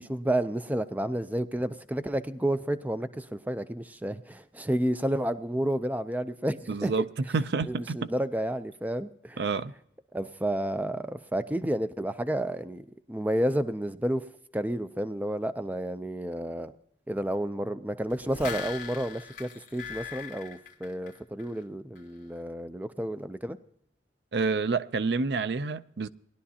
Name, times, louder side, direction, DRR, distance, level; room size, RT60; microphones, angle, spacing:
voice 1, 0.0-6.9 7.7-9.4 10.1-14.2 14.5-16.7 17.1-23.6, right 1 dB, 10° right, 0.4 m, -31 dB
voice 2, 6.7-8.1 9.4-9.7 24.3-26.1, right 4 dB, 70° right, 0.5 m, -28 dB
sound 1, 18.1-21.6 22.0-22.1, left 5 dB, 50° left, 1.5 m, -40 dB
20.0 x 11.5 x 2.8 m
head